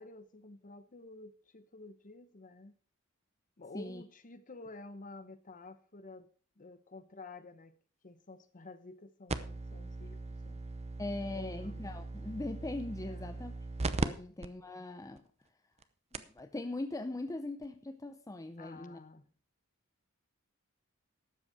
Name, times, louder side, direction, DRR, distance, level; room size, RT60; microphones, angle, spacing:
voice 1, 0.0-2.7 3.6-6.3 6.6-7.7 8.0-10.6 11.3-11.9 13.1-13.4 14.2-14.4 18.6-19.3, left 3 dB, 35° left, 0.9 m, -51 dB
sound 1, 9.3-14.1 14.4-14.5 15.2-15.3 15.8-15.9 16.1-16.4 17.6-17.7, right 3 dB, 30° right, 0.7 m, -38 dB
voice 2, 11.0-13.5 14.0-15.2 16.1-19.0, left 2 dB, 15° left, 0.6 m, -40 dB
12.5 x 8.2 x 4.9 m
head